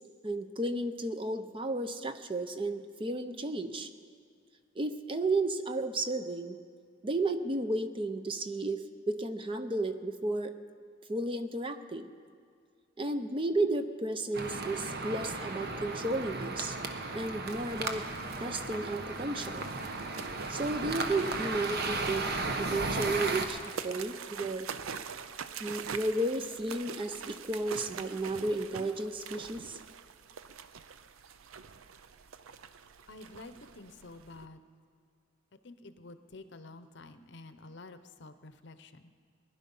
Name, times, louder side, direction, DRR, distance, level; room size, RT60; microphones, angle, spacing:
voice 1, 0.2-3.9 4.8-6.6 7.0-10.5 11.1-12.1 13.0-16.8 17.1-18.1 18.4-19.6 20.5-22.3 22.6-24.7 25.6-29.8, right 2 dB, 25° right, 9 dB, 0.6 m, -33 dB
sound 1, 14.3-23.5, right 3 dB, 50° right, 1.1 m, -35 dB
sound 2, 17.5-34.5, right 6 dB, 85° right, 0.6 m, -45 dB
voice 2, 33.1-34.6 35.6-39.1, left 2 dB, 60° left, 11 dB, 0.7 m, -49 dB
20.0 x 11.0 x 5.4 m, 2.1 s
head